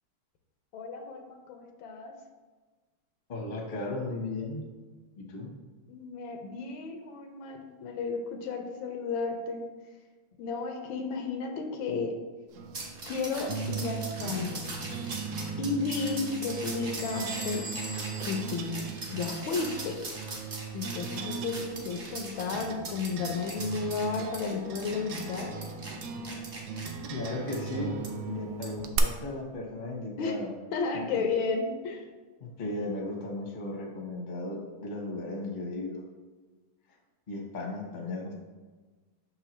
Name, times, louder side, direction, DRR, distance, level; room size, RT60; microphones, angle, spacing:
voice 1, 0.7-2.1 5.9-9.7 10.4-12.1 13.1-14.6 15.6-17.6 18.2-20.0 20.7-25.5 30.2-30.4 30.7-32.0, left 4 dB, 75° left, 5 dB, 1.4 m, -33 dB
voice 2, 3.3-4.7 5.2-5.5 27.1-30.5 30.9-31.2 32.4-36.0 37.3-38.3, left 2 dB, 35° left, 0 dB, 0.7 m, -36 dB
sound 1, 12.5-29.0, right 6 dB, 75° right, 1.3 m, -38 dB
sound 2, 12.7-26.9 27.5-27.6 28.0-28.1 28.6-28.8, right 2 dB, 40° right, 0.9 m, -41 dB
Bell / Squeak, 17.0-19.5, right 1 dB, 15° right, 0.7 m, -43 dB
6.3 x 5.6 x 3.0 m, 1.3 s
omnidirectional pair, 2.3 m